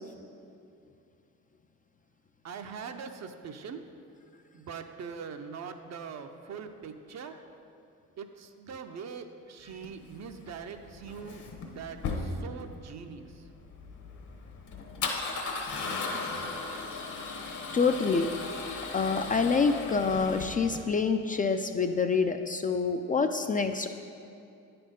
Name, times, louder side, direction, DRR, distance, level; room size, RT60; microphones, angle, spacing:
voice 1, 2.4-3.8 4.5-7.3 8.2-13.3, right 6 dB, 50° right, 7 dB, 0.7 m, -42 dB
Male speech man speaking / Car / Engine starting, 9.7-20.8, left 4 dB, 60° left, 1.1 m, -37 dB
voice 2, 17.7-18.3 18.9-23.9, left 5 dB, 25° left, 6 dB, 0.3 m, -27 dB
9.1 x 4.3 x 5.2 m, 2.5 s
supercardioid pair, 70°, 34 cm